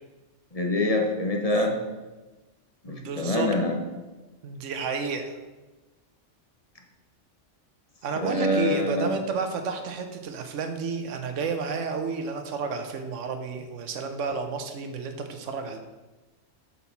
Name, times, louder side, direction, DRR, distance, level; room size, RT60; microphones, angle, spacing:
voice 1, 0.5-1.7 2.8-3.8 8.1-9.1, left 1 dB, 30° left, 2 dB, 1.2 m, -25 dB
voice 2, 2.9-3.5 4.4-5.4 8.0-15.8, right 5 dB, 75° right, 6 dB, 1.2 m, -31 dB
7.0 x 5.9 x 5.9 m, 1.1 s
omnidirectional pair, 1.3 m